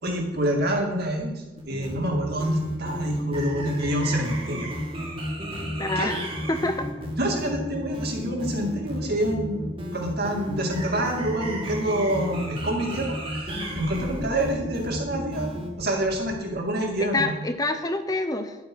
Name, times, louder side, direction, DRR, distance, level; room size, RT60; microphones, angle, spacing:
voice 1, 0.0-4.7 6.0-6.1 7.1-17.3, right 1 dB, 55° right, 1 dB, 2.3 m, -27 dB
sound 1, 1.6-15.7, equal, 30° right, 2.1 m, -33 dB
voice 2, 5.8-6.8 13.5-13.8 17.0-18.6, left 2 dB, 20° left, 7 dB, 0.7 m, -27 dB
11.0 x 7.9 x 6.2 m, 1.1 s
head